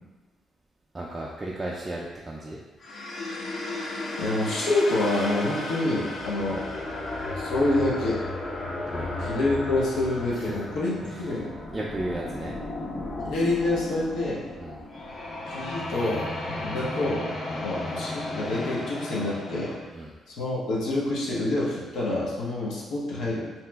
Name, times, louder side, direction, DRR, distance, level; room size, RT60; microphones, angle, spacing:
voice 1, 0.9-2.6 8.8-9.2 10.3-10.7 11.0-11.2 11.7-12.6 14.6-14.8 16.5-16.7 17.5-17.6 19.9-20.1, right 1 dB, 25° right, -4 dB, 0.3 m, -35 dB
sound 1, 2.8-19.8, left 2 dB, 45° left, 0.5 m, -34 dB
voice 2, 4.2-6.6 7.4-8.2 9.2-11.5 13.2-14.4 15.5-16.3 16.6-17.2 17.6-19.7 20.3-23.5, left 2 dB, 85° left, -6 dB, 0.7 m, -27 dB
2.8 x 2.0 x 3.3 m, 1.3 s
cardioid pair, 90°, 0 cm